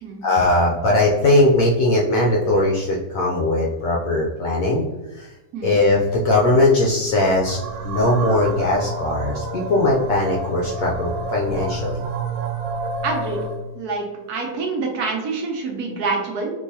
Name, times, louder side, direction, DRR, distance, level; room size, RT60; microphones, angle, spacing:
voice 1, 0.2-4.8 5.1-5.3 5.6-7.6 7.8-12.1, left 2 dB, 70° left, -2 dB, 0.8 m, -19 dB
sound 1, 7.5-13.6, right 2 dB, 85° right, 1.3 m, -29 dB
voice 2, 13.0-13.4 13.7-16.5, right 4 dB, 65° right, 0 dB, 1.2 m, -26 dB
3.8 x 2.7 x 2.8 m, 1.1 s
omnidirectional pair, 1.9 m